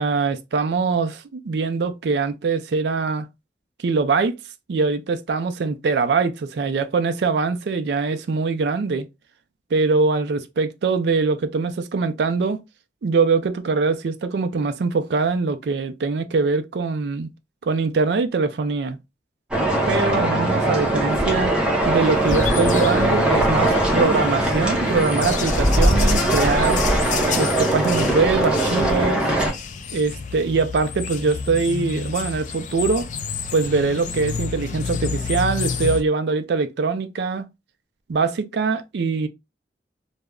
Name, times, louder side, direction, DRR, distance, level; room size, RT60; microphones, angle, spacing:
voice 1, 0.0-3.2 3.8-4.3 4.7-9.1 9.7-12.6 13.0-17.3 17.6-19.0 19.9-21.6 21.9-26.8 27.3-29.3 29.9-33.1 33.5-37.4 38.1-39.3, right 4 dB, 75° right, 0.4 m, -22 dB
sound 1, 19.5-29.5, right 1 dB, 5° right, 0.6 m, -20 dB
sound 2, 22.0-36.0, left 6 dB, 45° left, 0.3 m, -31 dB
2.3 x 2.1 x 3.5 m
head